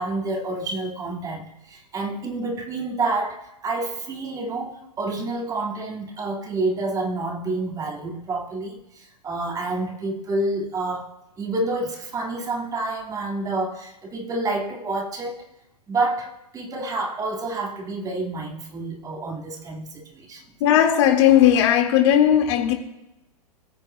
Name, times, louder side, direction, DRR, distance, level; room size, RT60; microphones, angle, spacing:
voice 1, 0.0-11.1 11.4-15.4 15.9-20.5, right 2 dB, 20° right, 2.0 m, -28 dB
voice 2, 20.6-22.7, left 10 dB, 45° left, 1.9 m, -17 dB
20.0 x 7.3 x 2.2 m
figure-of-eight pair, 115°, 20 cm